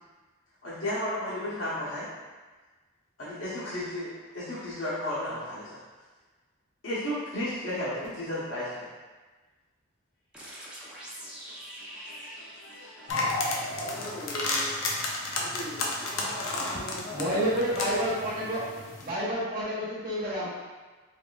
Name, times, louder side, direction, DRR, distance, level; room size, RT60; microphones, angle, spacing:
voice 1, 0.6-2.1 3.2-5.8 6.8-8.9 10.8-14.2, left 1 dB, 70° left, -11 dB, 1.0 m, -35 dB
sound 1, 10.3-13.8, equal, 5° right, 0.7 m, -45 dB
sound 2, 13.1-19.1, left 2 dB, 85° left, 0.6 m, -32 dB
voice 2, 13.8-14.8 15.4-17.6, equal, 35° left, -4 dB, 0.7 m, -41 dB
voice 3, 17.1-18.7 19.0-20.5, equal, 45° right, -7 dB, 1.0 m, -29 dB
3.6 x 3.2 x 2.4 m, 1.3 s
head